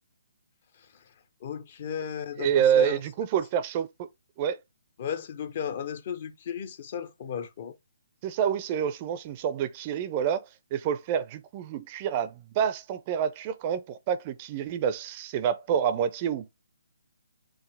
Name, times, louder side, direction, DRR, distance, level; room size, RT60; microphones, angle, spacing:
voice 1, 1.4-3.0 5.0-7.7, left 8 dB, 40° left, 0.6 m, -35 dB
voice 2, 2.4-4.1 4.4-4.6 8.2-10.4 10.7-16.4, right 8 dB, 30° right, 0.4 m, -27 dB
4.8 x 2.6 x 3.3 m
figure-of-eight pair, 135°, 0 cm